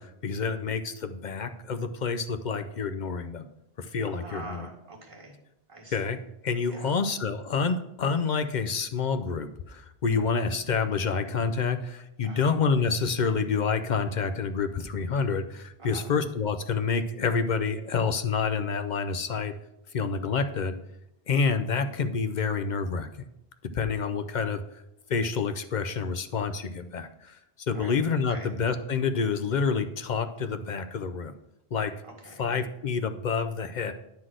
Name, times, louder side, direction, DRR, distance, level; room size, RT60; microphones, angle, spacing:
voice 1, 0.0-3.5 3.8-4.7 5.9-6.2 6.4-19.5 19.9-20.8 21.3-23.1 23.7-24.6 25.1-27.4 27.7-31.3 31.7-31.9 32.4-33.9, left 5 dB, 55° left, 9 dB, 0.6 m, -28 dB
voice 2, 4.0-5.3 5.7-6.0 6.7-6.9 12.2-12.5 15.8-16.1 27.7-28.0 28.3-28.5 32.0-32.5, right 2 dB, 30° right, -1 dB, 1.7 m, -44 dB
9.4 x 3.9 x 6.2 m, 0.84 s
omnidirectional pair, 1.1 m